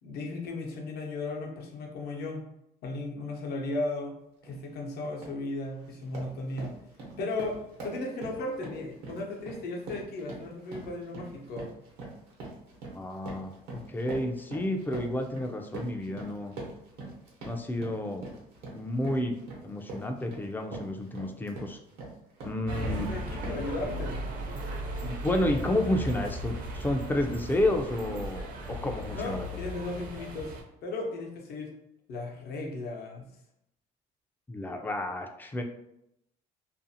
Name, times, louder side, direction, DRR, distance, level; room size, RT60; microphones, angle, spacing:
voice 1, 0.0-2.4 2.8-4.1 4.4-6.8 7.2-7.6 7.8-11.7 22.8-24.3 29.1-30.5 30.8-31.7 32.1-33.3, left 2 dB, 70° left, 0 dB, 0.7 m, -36 dB
sound 1, 4.4-4.6 5.0-5.4 5.8-23.1 23.4-23.8, right 2 dB, 85° right, 0.9 m, -43 dB
voice 2, 12.9-13.5 13.9-16.6 17.4-18.2 18.7-19.4 19.6-21.8 22.4-23.1 25.0-28.4 28.7-29.5 34.5-35.6, left 1 dB, 10° left, 4 dB, 0.3 m, -30 dB
sound 2, 22.7-30.6, right 1 dB, 55° right, 0.6 m, -36 dB
2.5 x 2.4 x 2.6 m, 0.80 s
cardioid pair, 110°, 17 cm